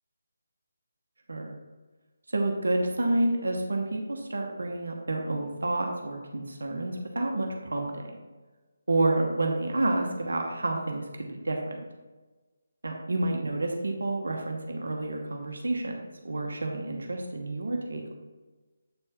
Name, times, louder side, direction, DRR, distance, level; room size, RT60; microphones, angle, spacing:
voice 1, 2.3-8.0 8.9-11.8 12.8-18.1, right 2 dB, 70° right, 2 dB, 1.0 m, -29 dB
7.8 x 4.4 x 3.6 m, 1.2 s
figure-of-eight pair, 150°, 0 cm